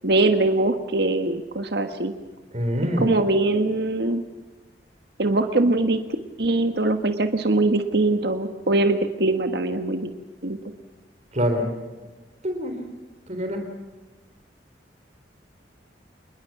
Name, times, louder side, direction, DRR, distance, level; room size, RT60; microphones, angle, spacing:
voice 1, 0.0-2.1 3.0-4.2 5.2-6.0 6.4-10.1 10.4-10.6, right 2 dB, 65° right, 7 dB, 1.5 m, -22 dB
voice 2, 2.5-3.1 11.3-11.7 12.4-12.7 13.3-13.6, equal, 40° right, 5 dB, 3.6 m, -25 dB
27.5 x 21.0 x 5.9 m, 1.2 s
head